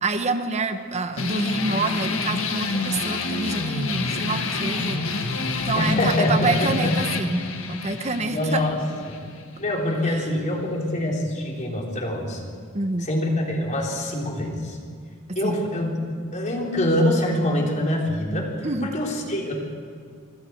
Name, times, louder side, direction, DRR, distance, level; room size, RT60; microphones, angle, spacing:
voice 1, 0.0-5.0 5.6-8.6 10.1-10.2 12.7-13.1 15.3-15.6 18.6-18.9, right 3 dB, 30° right, 8 dB, 1.3 m, -27 dB
sound 1, 1.2-10.2, left 3 dB, 70° left, 1.8 m, -28 dB
voice 2, 5.8-6.9 8.2-8.8 9.6-12.4 13.0-14.8 15.4-16.0 16.3-18.5 18.8-19.6, left 1 dB, 35° left, -1 dB, 4.0 m, -24 dB
26.0 x 25.0 x 4.7 m, 2.1 s
head